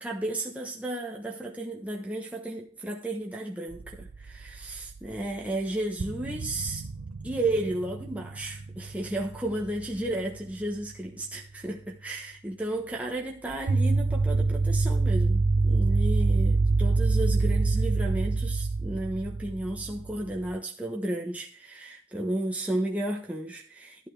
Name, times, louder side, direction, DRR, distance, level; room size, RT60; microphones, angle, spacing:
voice 1, 0.0-6.8 7.2-24.1, right 1 dB, 5° right, 1.0 m, -33 dB
sound 1, 3.7-5.2 5.5-5.6 6.0-10.4 13.5-20.5, right 3 dB, 85° right, 0.7 m, -26 dB
11.5 x 8.4 x 3.3 m
head